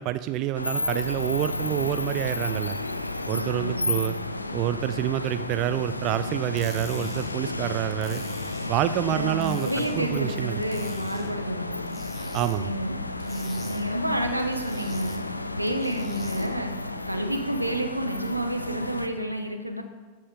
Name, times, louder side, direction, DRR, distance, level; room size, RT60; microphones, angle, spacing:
voice 1, 0.0-2.8 3.3-4.1 4.5-8.2 8.7-9.7 9.9-10.5 12.3-12.7, right 13 dB, 40° right, 12 dB, 0.3 m, -27 dB
sound 1, 0.5-19.1, left 2 dB, 85° left, 0.5 m, -32 dB
voice 2, 3.3-4.0 8.9-11.7 12.6-13.0 13.2-15.2 15.5-16.7 17.1-19.8, right 1 dB, 90° right, 5 dB, 1.0 m, -30 dB
sound 2, 6.4-16.7, left 2 dB, 15° left, 1.8 m, -45 dB
13.0 x 5.5 x 5.2 m, 1.3 s
figure-of-eight pair, 90°, 0 cm